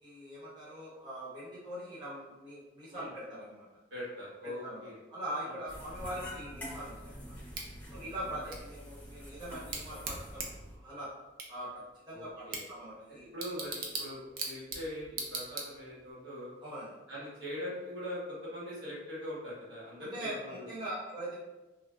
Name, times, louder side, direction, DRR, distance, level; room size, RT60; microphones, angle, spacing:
voice 1, 0.0-3.7 4.6-7.3 7.9-10.4 10.7-11.1 11.5-11.8 12.1-13.3 16.6-16.9 20.0-21.4, right 1 dB, 25° right, -9 dB, 0.8 m, -42 dB
voice 2, 3.9-5.0 5.4-5.6 7.9-8.0 12.1-12.6 13.3-16.5 17.1-20.7, left 1 dB, 80° right, -8 dB, 1.3 m, -42 dB
sound 1, 5.7-10.8, equal, 10° left, 0.6 m, -46 dB
Bicycle / Tick, 7.5-16.1, right 3 dB, 50° right, 0.4 m, -42 dB
3.0 x 2.5 x 2.3 m, 1.1 s
head